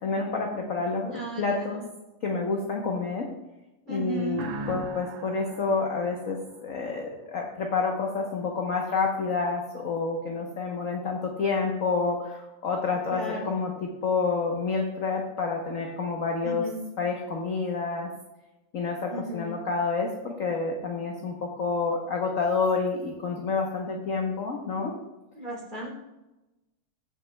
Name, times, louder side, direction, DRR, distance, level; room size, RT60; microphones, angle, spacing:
voice 1, 0.0-1.8 2.2-3.3 3.9-16.7 17.0-18.1 18.7-24.9, left 4 dB, 55° left, 1 dB, 0.9 m, -29 dB
voice 2, 1.1-1.8 3.9-4.4 13.1-13.5 16.4-16.8 19.1-19.6 25.4-25.9, right 1 dB, 20° right, -4 dB, 2.6 m, -35 dB
sound 1, 4.3-7.0, right 3 dB, 90° right, 1.7 m, -39 dB
14.5 x 6.9 x 2.2 m, 0.99 s
omnidirectional pair, 2.4 m